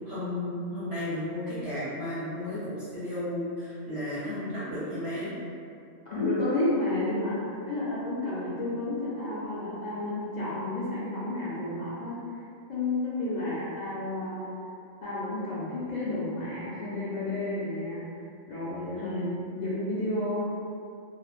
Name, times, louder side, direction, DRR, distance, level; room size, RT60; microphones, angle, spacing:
voice 1, 0.0-5.3 18.9-19.4, left 1 dB, 60° right, -12 dB, 0.9 m, -33 dB
voice 2, 6.1-7.4 7.6-12.2 12.7-14.5 15.0-18.0 18.5-19.3 19.6-20.4, left 2 dB, 55° left, -9 dB, 0.5 m, -31 dB
3.0 x 2.4 x 2.3 m, 2.5 s
omnidirectional pair, 1.3 m